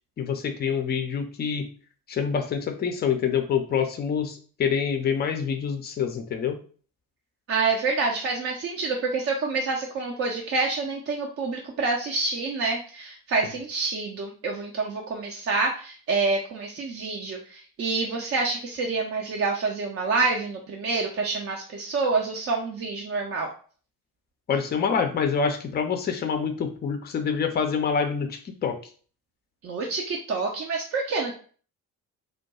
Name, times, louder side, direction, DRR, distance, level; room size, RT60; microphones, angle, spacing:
voice 1, 0.2-1.7 2.1-6.6 24.5-28.7, left 6 dB, 20° left, 6 dB, 0.4 m, -26 dB
voice 2, 7.5-23.5 29.6-31.3, right 4 dB, 30° right, 0 dB, 0.5 m, -27 dB
2.3 x 2.2 x 2.8 m, 0.42 s
figure-of-eight pair, 40°, 47 cm